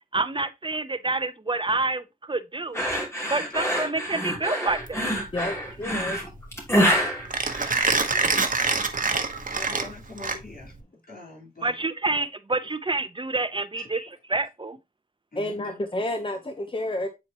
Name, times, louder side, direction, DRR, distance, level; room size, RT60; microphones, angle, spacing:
voice 1, 0.1-2.9 3.3-5.1 11.6-14.0 14.3-14.8, right 3 dB, 35° right, 0.6 m, -28 dB
sound 1, 2.7-8.3, equal, 15° left, 2.9 m, -26 dB
Mechanisms, 4.7-10.8, right 3 dB, 60° right, 1.0 m, -26 dB
voice 2, 5.3-6.2 8.2-8.9 15.3-17.1, left 1 dB, 35° left, 0.9 m, -31 dB
voice 3, 9.4-10.7 11.1-11.7 13.7-14.1 15.3-15.8, left 3 dB, 70° left, 3.8 m, -43 dB
8.1 x 4.2 x 2.9 m
cardioid pair, 50°, 16 cm